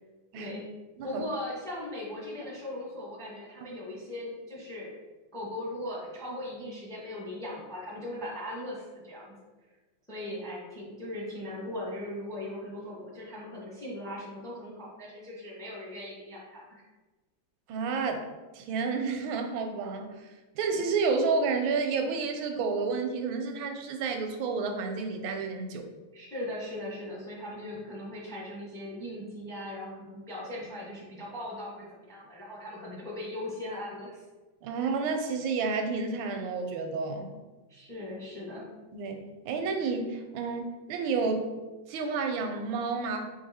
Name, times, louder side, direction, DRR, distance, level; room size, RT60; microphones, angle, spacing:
voice 1, 0.3-0.7 1.0-4.9 5.3-9.3 10.1-16.8 26.1-34.2 37.7-38.7, left 1 dB, 5° left, -5 dB, 0.5 m, -39 dB
voice 2, 17.7-18.3 18.5-20.1 20.5-25.8 34.6-37.3 38.9-39.2 39.4-41.5 41.9-43.2, right 4 dB, 85° right, 5 dB, 1.4 m, -30 dB
4.5 x 2.6 x 4.1 m, 1.2 s
omnidirectional pair, 2.1 m